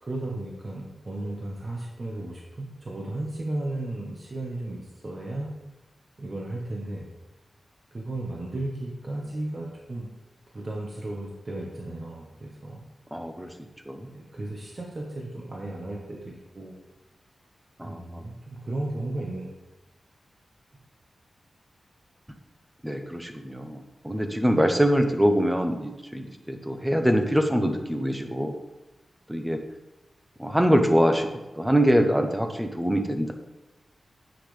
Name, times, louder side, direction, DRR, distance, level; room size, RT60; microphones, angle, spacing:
voice 1, 0.0-5.5 6.2-7.1 7.9-10.1 10.5-12.8 14.1-16.8 17.8-19.5, right 2 dB, 35° right, -2 dB, 1.3 m, -34 dB
voice 2, 13.1-13.5 13.9-14.1 17.8-18.2 22.8-28.6 29.3-29.6 30.4-31.3 31.6-33.3, equal, 5° right, 5 dB, 0.9 m, -24 dB
9.6 x 7.8 x 3.4 m, 1.1 s
wide cardioid pair, 145°, 0 cm